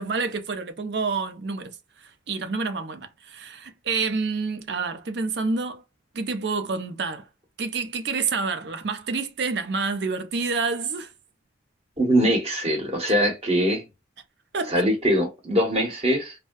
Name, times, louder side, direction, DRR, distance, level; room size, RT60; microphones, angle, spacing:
voice 1, 0.0-5.8 6.1-7.3 7.6-11.1 14.5-14.9, right 4 dB, 65° right, 0.5 m, -28 dB
voice 2, 12.0-13.8 14.7-16.3, equal, 35° right, 0.9 m, -22 dB
2.6 x 2.1 x 2.2 m
head